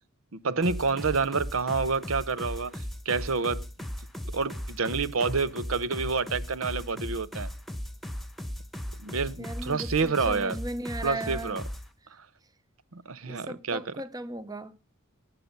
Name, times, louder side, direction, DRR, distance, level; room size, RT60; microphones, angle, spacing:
voice 1, 0.3-3.9 4.3-7.5 9.0-10.6 11.0-11.6 12.1-12.3 12.9-13.9, right 4 dB, 75° right, 0.9 m, -29 dB
sound 1, 0.6-11.9, equal, ahead, 1.3 m, -37 dB
voice 2, 9.4-11.6 13.2-14.7, right 1 dB, 15° right, 0.8 m, -37 dB
19.0 x 8.9 x 5.4 m
head